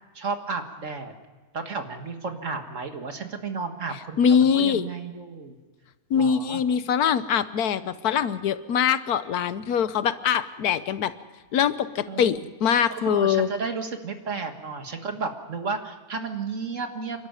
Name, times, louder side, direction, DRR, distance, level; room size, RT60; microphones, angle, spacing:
voice 1, 0.1-1.1 1.5-5.6 6.1-6.6 12.1-12.5 12.9-17.3, right 4 dB, 55° right, 6 dB, 2.0 m, -33 dB
voice 2, 4.2-4.9 6.1-11.1 11.5-13.5, left 8 dB, 85° left, 14 dB, 1.4 m, -23 dB
28.0 x 12.5 x 9.1 m, 1.3 s
omnidirectional pair, 1.6 m